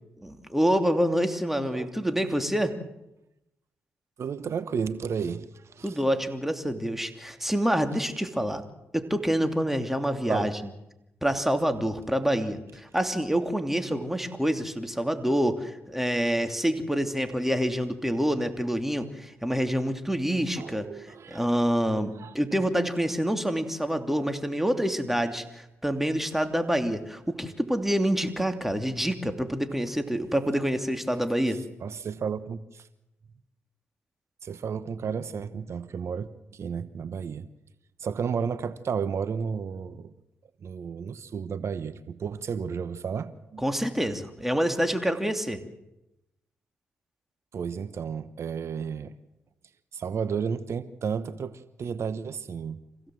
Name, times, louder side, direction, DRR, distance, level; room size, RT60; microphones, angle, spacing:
voice 1, 0.2-2.8 5.8-8.6 8.9-10.5 11.2-20.9 21.3-31.6 43.6-45.6, equal, 5° right, 2.9 m, -27 dB
voice 2, 4.2-6.0 10.3-10.5 20.6-21.5 22.2-22.3 24.2-24.3 30.2-30.3 31.5-32.9 34.4-37.5 38.0-40.1 40.6-43.6 47.5-49.2 49.9-52.8, right 6 dB, 65° right, 1.1 m, -33 dB
26.5 x 16.5 x 7.8 m
supercardioid pair, 50°, 5 cm